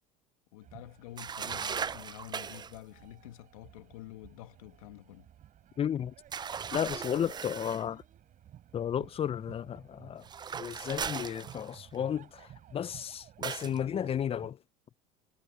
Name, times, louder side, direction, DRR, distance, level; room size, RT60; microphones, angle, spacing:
voice 1, 0.5-5.3 7.1-7.3, left 16 dB, 80° left, 1.9 m, -48 dB
sound 1, 0.6-14.5, right 11 dB, 45° right, 6.8 m, -55 dB
sound 2, 1.2-2.8 6.3-7.9 10.2-12.0 13.4-13.8, right 7 dB, 25° right, 0.6 m, -38 dB
voice 2, 5.8-6.1 6.7-8.0 8.7-10.2 10.6-14.6, left 9 dB, 35° left, 0.7 m, -33 dB
hypercardioid pair, 85°, 18 cm